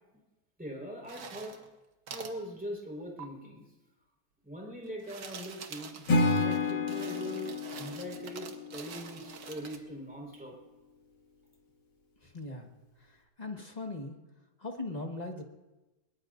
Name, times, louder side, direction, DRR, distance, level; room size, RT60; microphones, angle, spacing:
voice 1, 0.6-1.5 2.1-3.6 4.4-6.1 6.4-10.6, equal, 5° right, -1 dB, 4.4 m, -42 dB
sound 1, 1.0-1.7 2.1-2.4 3.2-3.3 4.9-9.8, right 6 dB, 75° right, 1.7 m, -46 dB
Acoustic guitar / Strum, 6.1-9.2, left 3 dB, 75° left, 2.8 m, -30 dB
voice 2, 12.2-12.7 13.0-14.2 14.6-15.4, left 2 dB, 25° left, 2 dB, 1.5 m, -40 dB
22.5 x 21.5 x 2.6 m, 1.1 s
omnidirectional pair, 1.9 m